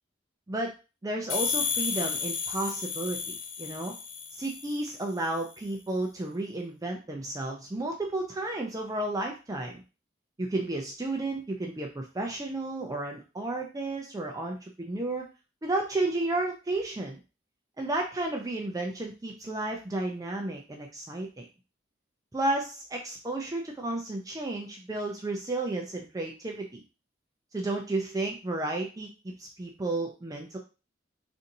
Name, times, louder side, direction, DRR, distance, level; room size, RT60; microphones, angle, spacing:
voice 1, 1.0-3.9 4.4-9.8 10.4-15.3 15.6-17.2 17.8-21.5 22.3-26.8 27.5-30.6, right 2 dB, 20° right, 1 dB, 0.4 m, -32 dB
sound 1, 1.3-4.9, left 6 dB, 90° left, 0.7 m, -32 dB
4.0 x 2.6 x 2.6 m, 0.31 s
head